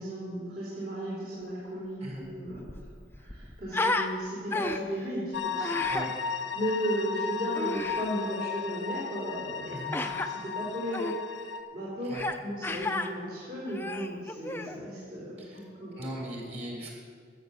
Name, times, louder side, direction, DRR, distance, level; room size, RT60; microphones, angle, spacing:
voice 1, 0.0-2.9 3.1-5.8 6.5-12.1 12.4-16.0, equal, 50° right, -8 dB, 3.7 m, -35 dB
Human voice, 2.1-2.2 2.5-4.1 4.5-5.0 5.6-6.1 7.6-8.1 9.9-10.3 10.9-11.2 12.1-12.4 12.6-13.1 13.7-14.8, left 2 dB, 10° left, 0.5 m, -32 dB
sound 1, 5.3-11.6, left 6 dB, 85° left, 0.9 m, -35 dB
voice 2, 16.0-16.9, right 1 dB, 35° right, -3 dB, 3.3 m, -38 dB
14.5 x 8.0 x 6.9 m, 2.1 s
head